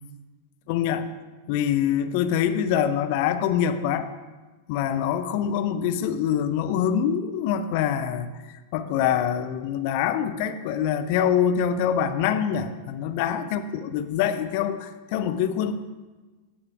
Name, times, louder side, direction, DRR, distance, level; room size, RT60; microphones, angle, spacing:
voice 1, 0.7-1.1 1.5-4.1 4.7-8.3 8.7-15.7, left 9 dB, 45° left, 9 dB, 0.5 m, -25 dB
14.5 x 7.1 x 2.4 m, 1.3 s
figure-of-eight pair, 90°, 0 cm